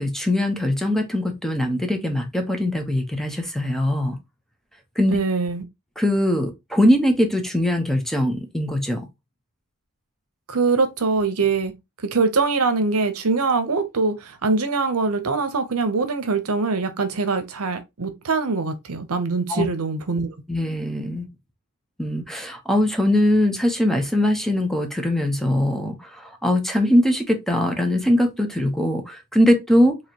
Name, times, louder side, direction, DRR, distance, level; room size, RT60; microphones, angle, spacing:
voice 1, 0.0-4.2 5.0-5.2 6.0-9.1 19.5-19.7 20.5-21.3 22.0-30.0, left 1 dB, ahead, 0.9 m, -21 dB
voice 2, 5.1-5.6 10.5-11.7 12.0-20.3, right 4 dB, 75° right, 0.8 m, -23 dB
4.8 x 3.0 x 2.9 m
head